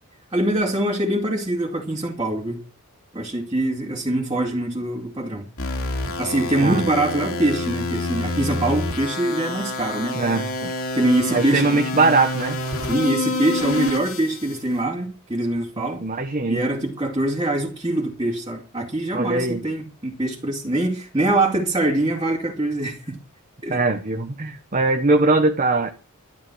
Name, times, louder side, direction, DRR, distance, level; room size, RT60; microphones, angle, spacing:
voice 1, 0.3-2.6 3.1-5.5 6.2-10.2 10.9-11.8 12.8-16.0 16.5-23.1 23.6-23.8, right 1 dB, 20° right, 2.7 m, -23 dB
sound 1, 5.6-14.6, left 2 dB, 65° left, 3.5 m, -27 dB
voice 2, 10.1-10.7 11.3-12.6 15.8-16.6 19.1-19.6 23.7-25.9, right 3 dB, 35° right, 1.3 m, -21 dB
12.5 x 11.5 x 6.3 m
head